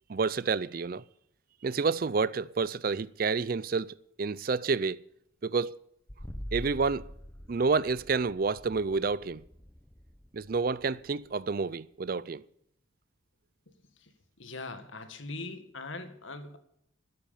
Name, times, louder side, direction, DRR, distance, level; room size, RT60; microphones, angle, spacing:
voice 1, 0.1-1.0 1.6-5.0 5.4-5.8 6.5-7.1 7.5-9.4 10.3-12.4, right 4 dB, 45° right, 0.4 m, -29 dB
sound 1, 6.1-11.7, equal, 10° left, 0.8 m, -45 dB
voice 2, 14.4-16.6, left 2 dB, 75° left, 1.9 m, -41 dB
13.0 x 9.7 x 7.0 m
head